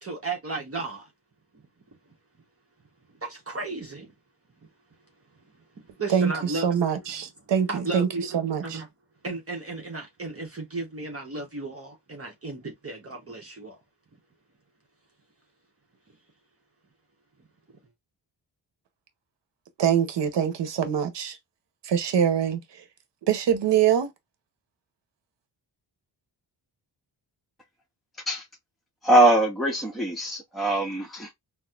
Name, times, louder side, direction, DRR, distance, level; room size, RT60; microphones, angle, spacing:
voice 1, 0.0-1.1 3.2-4.1 5.8-6.7 7.7-8.4 8.6-8.9 9.2-13.8, right 3 dB, 30° right, 0.9 m, -34 dB
voice 2, 6.1-8.1 8.3-8.8 19.8-21.4 21.8-22.8 23.3-24.1, right 8 dB, 65° right, 0.9 m, -24 dB
voice 3, 29.0-31.3, right 1 dB, ahead, 0.8 m, -22 dB
4.0 x 2.1 x 2.4 m
cardioid pair, 85°, 45 cm